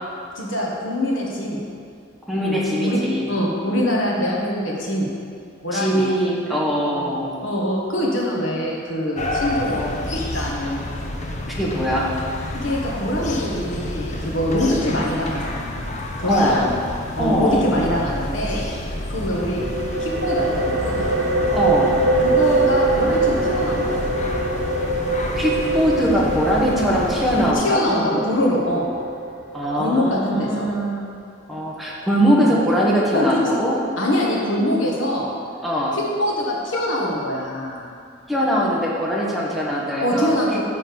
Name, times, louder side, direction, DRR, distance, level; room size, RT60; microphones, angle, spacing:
voice 1, 0.3-1.6 2.3-3.0 3.3-5.1 5.6-6.1 6.9-7.1 7.4-10.8 12.5-16.6 17.1-18.6 19.1-19.6 20.0-20.5 20.8-21.2 22.2-24.1 27.3-28.9 29.8-30.7 32.4-32.5 33.1-33.4 34.0-35.3 35.9-37.8 40.0-40.6, left 1 dB, 80° left, -3 dB, 1.6 m, -24 dB
voice 2, 2.3-3.3 5.7-7.4 11.6-12.2 16.2-16.7 17.2-17.7 21.5-22.0 25.4-28.0 29.5-31.1 31.5-33.8 35.6-36.0 38.3-40.4, equal, ahead, -5 dB, 1.2 m, -21 dB
sound 1, 9.2-27.5, left 1 dB, 35° left, 0.7 m, -30 dB
sound 2, 19.5-30.9, right 3 dB, 60° right, 0.9 m, -24 dB
9.9 x 3.9 x 7.0 m, 2.3 s
head